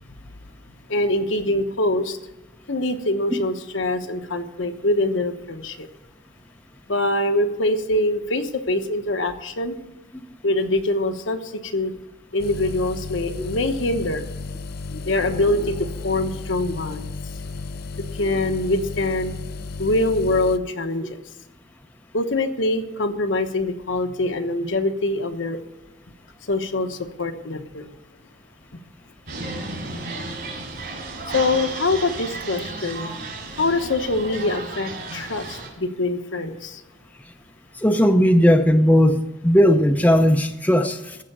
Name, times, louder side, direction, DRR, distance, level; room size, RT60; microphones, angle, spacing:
voice 1, 0.9-2.2 2.7-5.9 6.9-9.8 10.4-11.9 12.3-14.2 14.9-17.1 18.1-19.3 19.8-21.0 22.1-25.6 26.5-27.9 31.3-33.1 33.6-36.8, left 2 dB, 70° left, 7 dB, 1.0 m, -24 dB
sound 1, 12.4-20.6, left 3 dB, 50° left, 0.4 m, -34 dB
sound 2, 29.3-35.7, right 3 dB, 55° right, 4.1 m, -33 dB
voice 2, 37.8-41.2, equal, 10° left, 6 dB, 0.6 m, -17 dB
14.5 x 5.7 x 8.9 m, 1.0 s
head